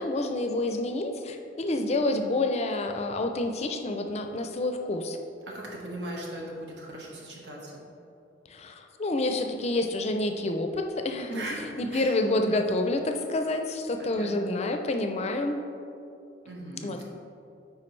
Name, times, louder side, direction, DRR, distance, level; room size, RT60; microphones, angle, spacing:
voice 1, 0.0-5.2 8.5-15.6 16.8-17.0, left 2 dB, 35° left, 5 dB, 0.4 m, -28 dB
voice 2, 5.5-7.7 11.3-12.2 14.0-14.3 16.4-17.0, right 1 dB, 75° right, -3 dB, 1.3 m, -38 dB
8.5 x 4.7 x 3.2 m, 2.6 s
head